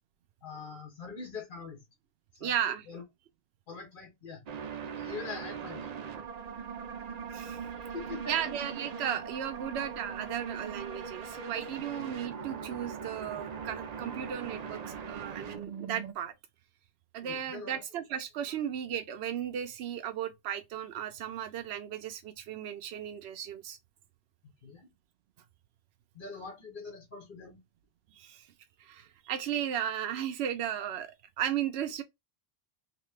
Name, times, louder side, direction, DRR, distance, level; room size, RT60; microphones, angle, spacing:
voice 1, 0.4-1.8 2.3-2.5 2.9-3.0 3.7-4.4 5.0-5.9 7.9-8.4 17.2-17.8 24.6-24.9 26.1-27.6, left 4 dB, 55° left, 1.2 m, -43 dB
voice 2, 2.4-2.9 7.3-7.6 8.3-16.3 17.1-23.8 28.1-28.5 28.8-32.0, right 9 dB, 80° right, 0.8 m, -35 dB
sound 1, 4.5-16.1, right 6 dB, 50° right, 0.5 m, -40 dB
3.0 x 2.9 x 3.1 m
omnidirectional pair, 1.1 m